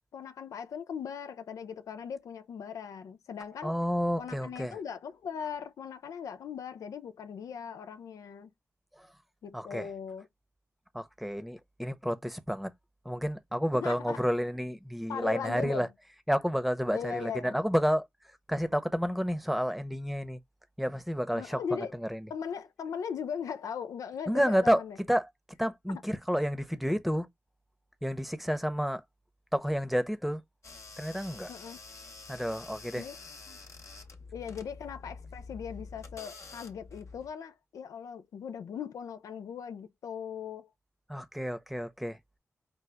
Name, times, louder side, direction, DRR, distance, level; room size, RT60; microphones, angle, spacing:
voice 1, 0.1-3.7 4.2-8.5 9.4-10.3 13.7-14.2 15.1-15.9 16.9-17.6 21.3-21.9 22.3-25.0 25.9-26.0 31.5-31.8 32.9-33.2 33.5-33.6 34.3-40.7, left 7 dB, 85° left, 0.4 m, -39 dB
voice 2, 3.6-4.8 9.0-9.1 9.5-9.9 10.9-12.7 13.0-15.9 16.3-18.1 18.5-20.4 20.8-22.3 24.3-24.8 25.1-25.3 25.6-27.3 28.0-29.0 29.5-30.4 31.0-31.5 32.3-33.1 41.1-42.2, equal, ahead, 0.8 m, -30 dB
sound 1, 30.6-37.3, left 4 dB, 60° left, 1.0 m, -47 dB
5.0 x 2.2 x 3.3 m
cardioid pair, 40°, 6 cm